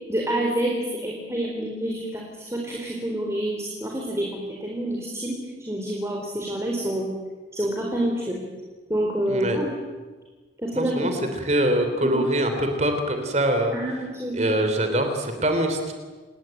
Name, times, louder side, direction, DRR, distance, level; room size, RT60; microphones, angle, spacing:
voice 1, 0.1-5.4 5.7-7.1 7.5-8.4 8.9-9.7 10.6-11.1 12.0-12.3 13.7-14.6, right 1 dB, 15° right, -1 dB, 4.3 m, -28 dB
voice 2, 9.3-9.6 10.7-13.7 14.3-15.9, right 1 dB, 40° right, 6 dB, 3.5 m, -23 dB
28.5 x 21.5 x 9.1 m, 1.3 s
head